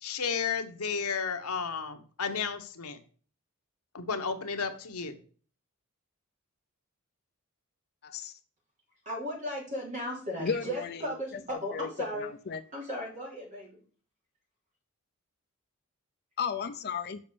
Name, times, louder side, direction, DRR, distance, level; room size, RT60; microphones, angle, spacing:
voice 1, 0.0-3.0 3.9-5.2, left 5 dB, 80° left, 7 dB, 1.1 m, -33 dB
voice 2, 8.0-8.4 10.4-11.0 11.7-11.9 12.1-12.6 16.4-17.2, left 6 dB, 45° left, 10 dB, 0.5 m, -34 dB
voice 3, 9.1-12.3 12.7-13.8, equal, 35° right, -2 dB, 3.6 m, -36 dB
7.0 x 5.3 x 6.8 m, 0.43 s
head